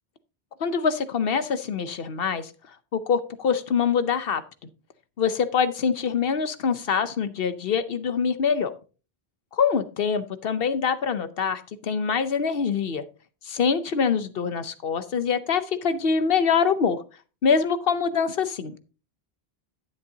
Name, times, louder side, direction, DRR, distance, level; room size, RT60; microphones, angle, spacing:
voice 1, 0.6-2.5 2.9-4.7 5.2-8.7 9.5-13.0 13.4-17.0 17.4-18.8, left 6 dB, 65° left, 13 dB, 1.0 m, -24 dB
10.5 x 9.4 x 2.8 m, 0.34 s
omnidirectional pair, 1.0 m